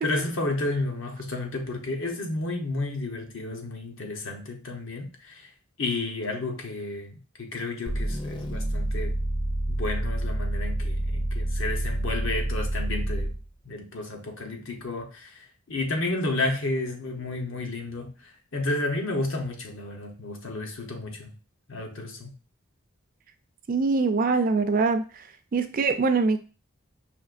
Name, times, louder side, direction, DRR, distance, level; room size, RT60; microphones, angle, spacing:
voice 1, 0.0-5.4 5.8-9.2 9.7-13.3 13.6-15.3 15.7-18.1 18.5-21.3 21.7-22.3, left 2 dB, 65° left, 0.9 m, -31 dB
sound 1, 7.9-13.5, right 1 dB, 20° left, 0.5 m, -28 dB
voice 2, 23.7-25.2 25.5-26.4, right 4 dB, 40° right, 0.4 m, -23 dB
5.1 x 2.9 x 2.5 m
head